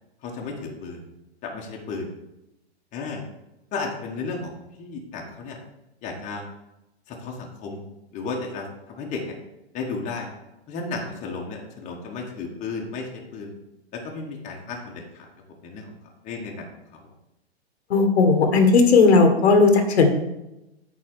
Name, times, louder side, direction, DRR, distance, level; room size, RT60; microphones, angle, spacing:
voice 1, 0.2-1.0 1.4-2.1 2.9-3.2 3.7-5.6 6.0-6.4 7.1-7.8 8.1-9.3 9.7-10.3 10.7-13.5 13.9-15.3 15.6-15.9 16.2-16.6, left 4 dB, 20° left, 0 dB, 1.4 m, -33 dB
voice 2, 17.9-20.1, left 4 dB, 75° left, 6 dB, 1.6 m, -16 dB
8.7 x 4.2 x 6.1 m, 0.93 s
hypercardioid pair, 140°, 33 cm